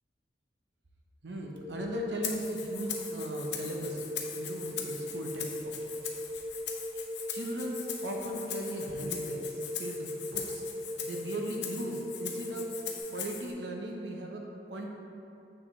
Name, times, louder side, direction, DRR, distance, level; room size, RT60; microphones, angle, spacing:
voice 1, 1.2-4.1 4.3-5.7 6.9-7.0 7.3-10.7 11.0-12.8 13.1-14.9, right 1 dB, 85° right, 0 dB, 0.9 m, -38 dB
sound 1, 1.5-13.0, left 1 dB, 5° right, 1.4 m, -39 dB
Rattle (instrument), 2.2-13.5, left 8 dB, 85° left, 0.7 m, -41 dB
7.3 x 6.2 x 3.2 m, 2.8 s
head